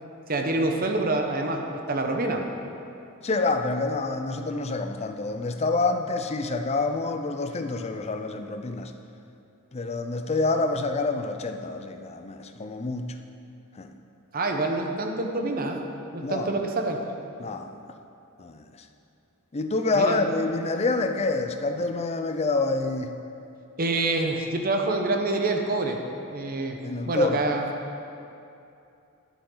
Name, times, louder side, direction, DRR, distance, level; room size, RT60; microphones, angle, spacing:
voice 1, 0.3-2.5 14.3-15.9 16.1-17.0 19.9-20.2 23.8-26.0 26.3-26.8 27.1-27.6, right 2 dB, 40° right, 3 dB, 0.9 m, -26 dB
voice 2, 3.2-8.9 9.7-13.1 13.8-13.9 16.2-16.5 17.4-17.7 18.4-18.7 19.5-23.2 26.8-27.4, left 3 dB, 30° left, 7 dB, 0.5 m, -27 dB
10.5 x 10.5 x 3.9 m, 2.7 s
head